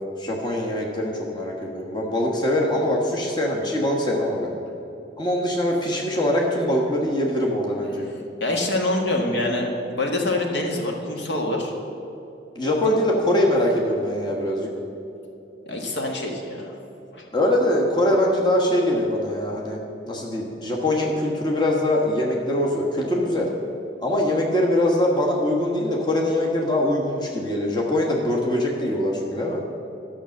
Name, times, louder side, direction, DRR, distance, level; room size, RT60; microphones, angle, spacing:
voice 1, 0.0-4.5 5.2-8.0 12.5-14.7 17.3-19.8 20.0-23.5 24.0-29.6, left 1 dB, 25° left, -2 dB, 1.3 m, -23 dB
voice 2, 8.0-11.7 15.7-16.6 17.1-17.2, left 1 dB, 70° left, 1 dB, 1.6 m, -25 dB
12.0 x 6.2 x 7.6 m, 2.9 s
head